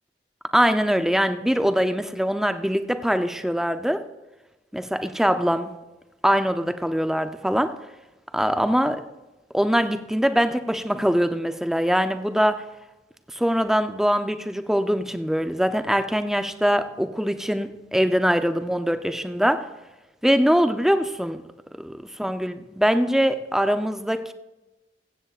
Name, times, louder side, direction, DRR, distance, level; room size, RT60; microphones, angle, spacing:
voice 1, 0.5-4.1 4.7-5.7 6.2-7.8 8.3-9.0 9.5-12.6 13.3-19.7 20.2-21.4 21.8-21.9 22.2-24.3, equal, ahead, 0.6 m, -22 dB
16.5 x 15.0 x 2.4 m
head